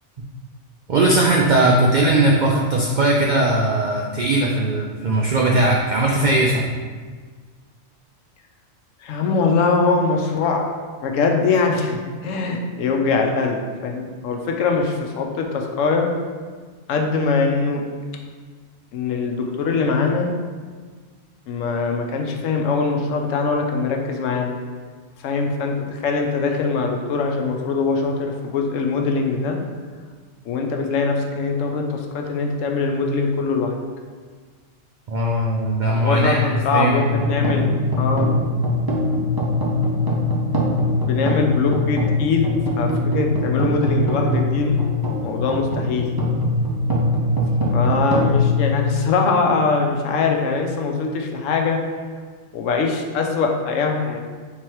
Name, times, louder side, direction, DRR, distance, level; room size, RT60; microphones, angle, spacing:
voice 1, 0.9-6.7 35.1-36.4 36.7-37.2, right 2 dB, 85° right, -1 dB, 0.4 m, -19 dB
voice 2, 9.0-16.1 16.9-17.8 18.9-20.3 21.5-24.5 25.2-29.6 30.5-33.7 35.9-37.7 38.0-38.4 40.9-44.8 45.2-46.0 47.7-51.8 52.5-54.2, left 4 dB, 80° left, 2 dB, 1.0 m, -22 dB
sound 1, 37.0-49.4, left 1 dB, 25° right, 0.5 m, -22 dB
3.8 x 3.0 x 4.6 m, 1.5 s
omnidirectional pair, 1.3 m